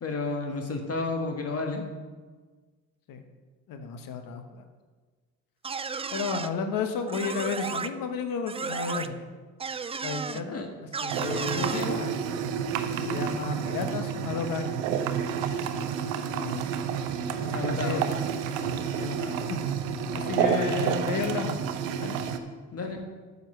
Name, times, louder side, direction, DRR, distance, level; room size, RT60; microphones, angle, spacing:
voice 1, 0.0-1.9 10.5-10.7 11.6-12.0 16.3-16.7 17.5-18.1 22.7-23.1, left 3 dB, 40° left, 4 dB, 1.6 m, -32 dB
voice 2, 3.7-4.6 6.1-9.3 10.0-10.6 11.0-12.2 13.0-14.7 17.4-18.0 18.9-19.6 20.1-21.6 22.0-22.2, left 5 dB, 55° left, 7 dB, 1.2 m, -32 dB
sound 1, 5.6-6.5 7.1-7.9 8.5-9.1 9.6-10.4 10.9-11.9, right 5 dB, 15° right, 0.4 m, -33 dB
sound 2, 11.1-22.4, right 7 dB, 80° right, 0.8 m, -30 dB
9.0 x 5.6 x 6.5 m, 1.4 s
hypercardioid pair, 55°, 39 cm